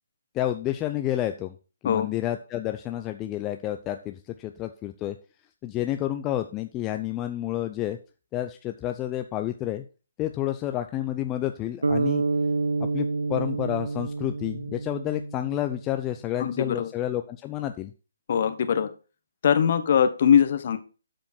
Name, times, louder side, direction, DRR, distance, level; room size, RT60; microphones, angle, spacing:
voice 1, 0.3-1.5 1.8-5.2 5.6-8.0 8.3-9.8 10.2-12.2 12.8-17.9, left 13 dB, 20° left, 6 dB, 0.6 m, -30 dB
sound 1, 11.8-16.1, right 3 dB, 75° right, 0.4 m, -28 dB
voice 2, 16.4-16.9 18.3-18.9 19.4-20.8, left 8 dB, 45° left, 10 dB, 1.3 m, -21 dB
12.0 x 5.2 x 4.5 m, 0.35 s
figure-of-eight pair, 140°, 0 cm